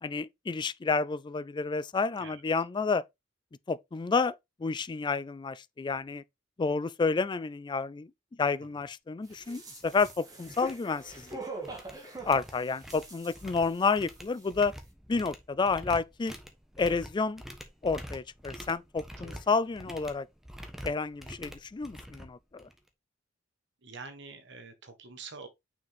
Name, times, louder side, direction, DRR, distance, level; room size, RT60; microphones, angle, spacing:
voice 1, 0.0-3.0 3.7-6.2 6.6-8.1 8.4-11.4 12.2-14.7 15.1-16.3 16.8-17.4 17.8-20.3 20.8-22.7, left 4 dB, 25° left, 0.3 m, -30 dB
sound 1, 8.8-8.9 9.3-9.5 9.8-10.1 10.4-11.4 11.6-22.9, equal, ahead, 1.1 m, -46 dB
sound 2, 9.3-14.1 14.4-14.5, right 3 dB, 20° right, 1.8 m, -44 dB
voice 2, 23.8-25.5, right 4 dB, 65° right, 1.2 m, -46 dB
6.1 x 5.0 x 3.4 m
head